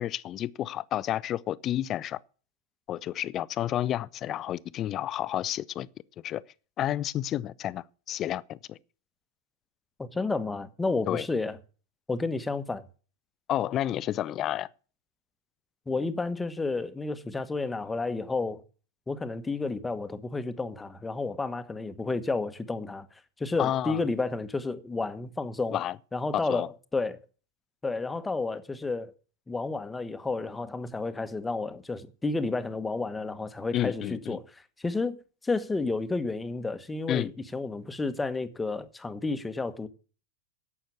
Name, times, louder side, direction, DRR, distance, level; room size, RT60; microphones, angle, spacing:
voice 1, 0.0-2.2 2.9-5.9 6.2-6.4 6.8-8.8 11.1-11.3 13.5-14.7 23.6-24.0 25.7-26.0 26.3-26.7 33.7-34.4 37.1-37.3, left 12 dB, 30° left, 0.5 m, -30 dB
voice 2, 10.0-11.6 12.1-12.9 15.9-18.6 19.1-23.1 23.4-25.8 26.1-27.2 27.8-29.1 29.5-34.4 34.8-35.2 35.4-39.9, left 3 dB, 10° left, 1.2 m, -31 dB
11.5 x 8.6 x 7.0 m
figure-of-eight pair, 90°, 0 cm